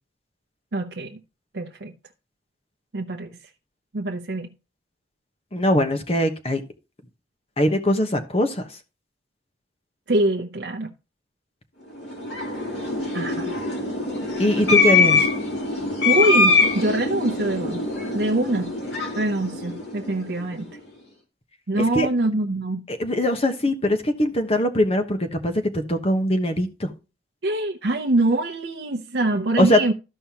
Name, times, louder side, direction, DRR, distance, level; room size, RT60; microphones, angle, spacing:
voice 1, 0.7-1.2 1.5-1.9 2.9-3.3 3.9-4.5 10.1-10.9 13.1-13.6 16.0-17.8 18.1-18.7 19.2-20.7 21.7-22.8 27.4-29.9, right 2 dB, 70° right, 0.7 m, -24 dB
voice 2, 5.5-6.6 7.6-8.6 14.4-15.3 21.8-22.1 22.9-26.9 29.6-29.8, left 1 dB, 35° left, 1.1 m, -21 dB
sound 1, 12.0-20.5, left 3 dB, 70° left, 2.9 m, -23 dB
14.0 x 5.5 x 2.9 m
head